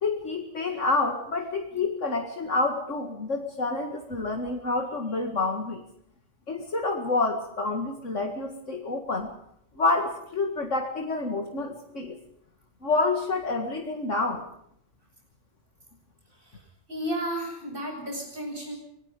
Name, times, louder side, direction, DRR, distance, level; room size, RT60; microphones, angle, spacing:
voice 1, 0.0-5.8 6.5-9.3 9.8-12.2 12.8-14.4, left 3 dB, 70° left, 3 dB, 2.3 m, -28 dB
voice 2, 16.9-18.7, right 1 dB, 40° right, 1 dB, 8.1 m, -33 dB
24.5 x 19.5 x 5.3 m, 0.73 s
omnidirectional pair, 1.4 m